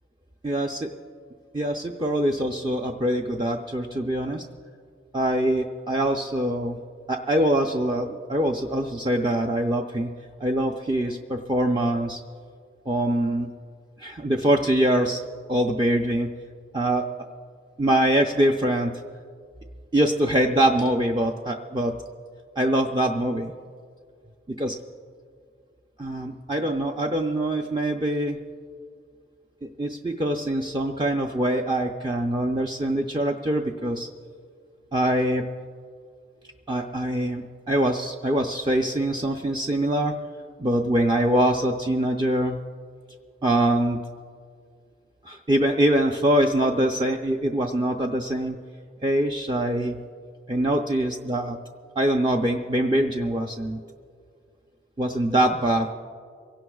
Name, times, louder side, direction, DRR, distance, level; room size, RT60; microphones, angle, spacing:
voice 1, 0.4-0.9 1.5-4.4 5.1-6.8 7.1-10.1 10.4-12.2 12.9-13.5 14.0-15.2 15.5-16.3 16.7-17.1 17.8-18.9 19.9-22.0 22.6-23.5 24.5-24.8 26.0-28.4 29.8-34.1 34.9-35.4 36.7-40.1 40.6-42.6 43.4-44.0 45.2-48.6 49.0-50.0 50.5-51.6 52.0-53.8 55.0-55.9, right 1 dB, 25° right, 1 dB, 0.5 m, -23 dB
24.0 x 17.0 x 2.4 m, 2.1 s
head